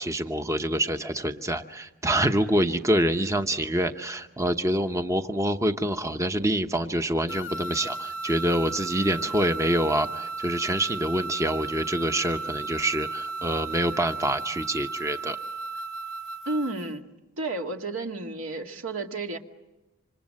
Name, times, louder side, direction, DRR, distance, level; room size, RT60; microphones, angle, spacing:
voice 1, 0.0-15.4, right 1 dB, 15° right, 7 dB, 0.9 m, -26 dB
sound 1, 7.3-16.9, right 4 dB, 65° left, 0.8 m, -35 dB
voice 2, 16.5-17.0 17.4-19.4, right 2 dB, 70° right, 3 dB, 2.2 m, -31 dB
28.0 x 26.0 x 7.6 m, 1.1 s
head